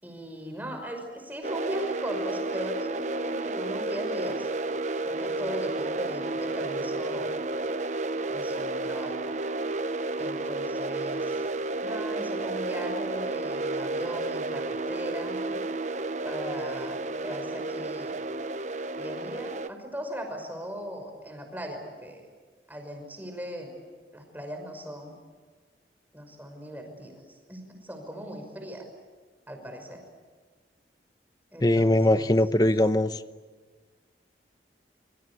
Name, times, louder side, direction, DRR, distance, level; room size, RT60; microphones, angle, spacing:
voice 1, 0.0-4.5 5.1-7.3 8.3-9.1 10.1-11.4 11.8-15.6 16.2-18.2 19.0-22.2 22.7-23.7 24.1-25.2 26.1-28.9 29.5-30.0 31.5-32.4, equal, 10° right, 4 dB, 5.7 m, -38 dB
sound 1, 1.4-19.7, right 2 dB, 40° right, 0.8 m, -31 dB
voice 2, 31.6-33.2, left 1 dB, 20° left, 11 dB, 0.9 m, -21 dB
27.0 x 25.0 x 8.6 m, 1.4 s
head